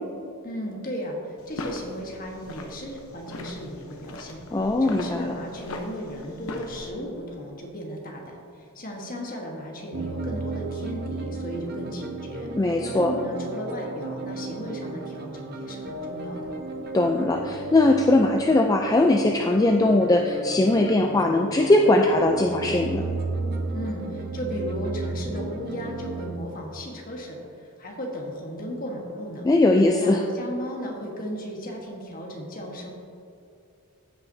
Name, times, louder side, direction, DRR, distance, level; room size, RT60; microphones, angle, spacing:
voice 1, 0.4-16.5 23.7-27.4 27.8-29.5 30.0-32.9, equal, 40° left, 0 dB, 1.3 m, -35 dB
sound 1, 1.4-6.9, left 1 dB, 70° left, 0.8 m, -39 dB
voice 2, 4.5-5.3 12.6-13.1 16.9-23.0 29.4-30.2, left 2 dB, 15° left, 2 dB, 0.3 m, -20 dB
sound 2, 9.9-26.4, right 3 dB, 45° right, 0.7 m, -34 dB
15.0 x 5.7 x 2.7 m, 2.6 s
head